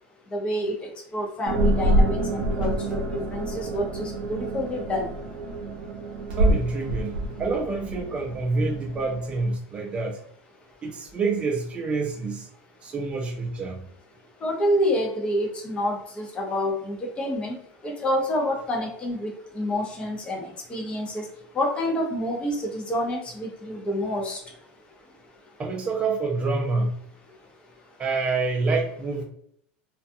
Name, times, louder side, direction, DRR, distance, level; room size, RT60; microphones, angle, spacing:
voice 1, 0.3-0.7 1.1-3.0 3.3-5.1 14.4-17.6 17.8-20.4 20.7-21.2 21.5-24.4, left 1 dB, 20° left, 0 dB, 0.7 m, -28 dB
sound 1, 1.5-9.4, right 1 dB, 70° right, 0.6 m, -26 dB
voice 2, 6.4-10.2 10.8-12.5 12.8-13.9 25.6-26.9 28.0-29.2, right 3 dB, 20° right, 1 dB, 0.5 m, -27 dB
2.5 x 2.3 x 2.6 m, 0.67 s
supercardioid pair, 145°, 5 cm